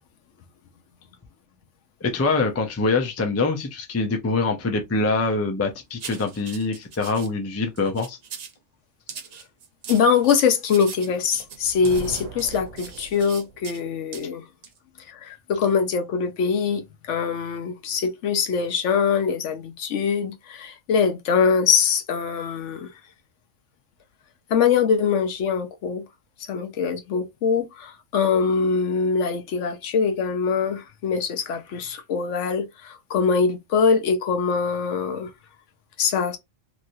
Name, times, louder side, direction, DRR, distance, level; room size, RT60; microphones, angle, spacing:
voice 1, 2.0-8.2, left 3 dB, 25° left, 0.3 m, -24 dB
sound 1, 6.0-7.3 7.8-8.6 9.1-13.8 14.1-14.3 14.6-14.8, right 7 dB, 65° right, 0.4 m, -40 dB
voice 2, 9.9-14.4 15.1-22.9 24.5-26.0 26.5-35.3 36.0-36.4, left 6 dB, 75° left, 1.0 m, -23 dB
Thunder, 11.4-13.7, right 4 dB, 90° right, 1.1 m, -39 dB
3.1 x 2.6 x 2.6 m
omnidirectional pair, 1.3 m